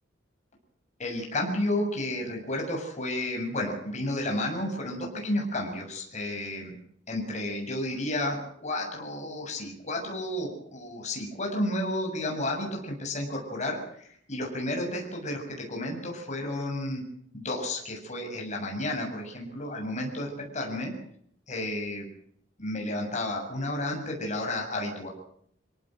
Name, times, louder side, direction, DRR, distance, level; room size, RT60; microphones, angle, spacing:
voice 1, 1.0-6.8 7.1-17.0 17.3-20.9 21.5-22.1 22.6-25.1, left 1 dB, 40° left, 1 dB, 7.2 m, -32 dB
26.5 x 18.0 x 7.8 m, 0.66 s
head